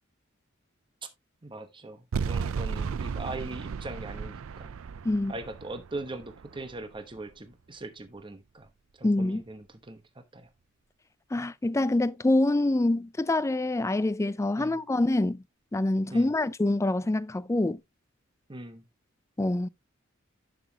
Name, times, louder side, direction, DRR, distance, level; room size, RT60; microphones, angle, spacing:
voice 1, 1.4-4.7 5.3-8.7 9.0-10.0 10.3-10.5 14.5-14.8 16.1-16.3 18.5-18.8, right 2 dB, 25° right, 1.0 m, -40 dB
sound 1, 2.1-7.3, right 5 dB, 85° right, 0.4 m, -35 dB
voice 2, 9.0-9.4 11.3-15.4 15.7-17.8 19.4-19.7, left 2 dB, 15° left, 0.4 m, -26 dB
11.0 x 6.1 x 2.8 m
head